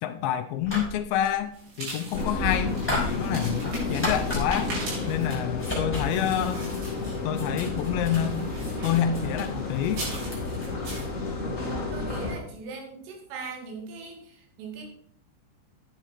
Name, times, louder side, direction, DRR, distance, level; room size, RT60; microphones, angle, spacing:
voice 1, 0.0-4.7 5.1-6.7 7.2-8.5 8.8-10.0, left 10 dB, 80° left, 7 dB, 2.7 m, -28 dB
sound 1, 0.6-1.3 2.1-4.9 5.5-10.7, left 2 dB, ahead, 5.4 m, -34 dB
sound 2, 1.5-7.4 7.9-9.1 9.9-10.3 10.8-11.1, right 2 dB, 60° right, 7.0 m, -40 dB
sound 3, 2.1-12.3, left 3 dB, 35° left, 1.3 m, -31 dB
voice 2, 11.5-14.8, right 4 dB, 90° right, 2 dB, 4.7 m, -40 dB
11.5 x 9.1 x 4.5 m, 0.65 s
omnidirectional pair, 5.5 m